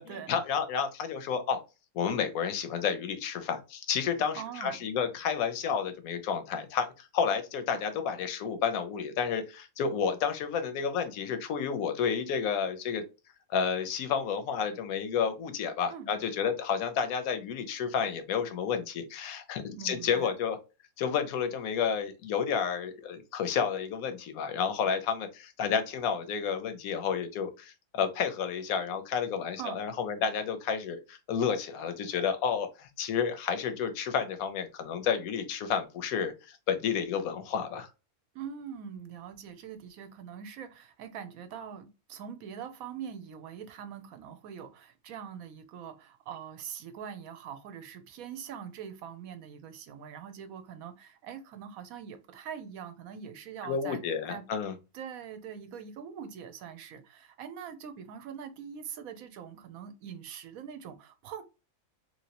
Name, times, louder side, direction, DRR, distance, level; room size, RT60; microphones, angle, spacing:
voice 1, 0.0-1.6 1.9-13.0 13.5-20.6 21.0-37.9 53.6-54.7, left 7 dB, 75° left, 1.0 m, -31 dB
voice 2, 4.3-4.8 15.9-16.1 19.7-20.4 29.6-29.8 38.3-54.0 54.3-54.4 54.9-61.4, right 8 dB, 70° right, 1.0 m, -43 dB
3.0 x 3.0 x 2.8 m
omnidirectional pair, 1.6 m